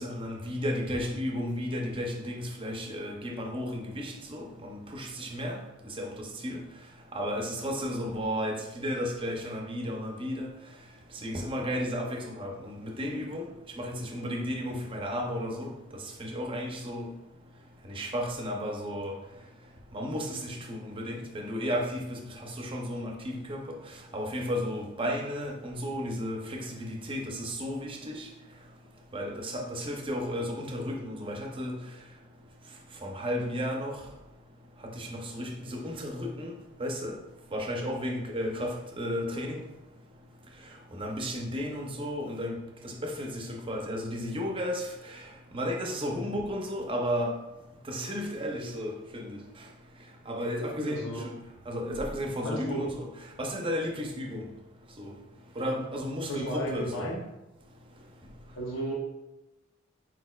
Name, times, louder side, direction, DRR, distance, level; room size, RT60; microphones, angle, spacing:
voice 1, 0.0-5.6 5.9-6.6 7.1-10.5 11.2-13.5 13.8-15.7 16.2-17.1 17.8-19.1 19.9-23.6 24.1-28.3 29.1-31.8 33.0-34.0 34.9-36.5 36.8-37.2 37.5-39.6 40.9-42.6 42.8-45.2 45.5-47.4 47.8-49.4 50.3-51.3 51.7-53.1 53.4-54.5 55.0-55.1 55.6-57.1, equal, 25° right, 1 dB, 0.6 m, -33 dB
voice 2, 52.4-52.8 56.3-57.2 58.5-58.9, equal, 75° left, -1 dB, 0.7 m, -33 dB
4.4 x 4.2 x 2.3 m, 0.99 s
head